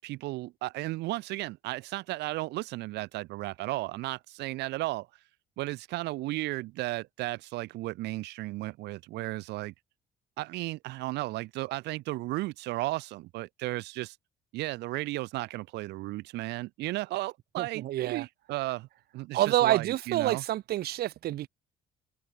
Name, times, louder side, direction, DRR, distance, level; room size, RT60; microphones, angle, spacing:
voice 1, 0.0-5.1 5.6-9.7 10.4-14.2 14.5-18.9 19.1-20.4, right 19 dB, 85° right, 7.2 m, -34 dB
voice 2, 17.6-18.3 19.3-21.5, right 14 dB, 70° right, 2.4 m, -28 dB
cardioid pair, 110°, 17 cm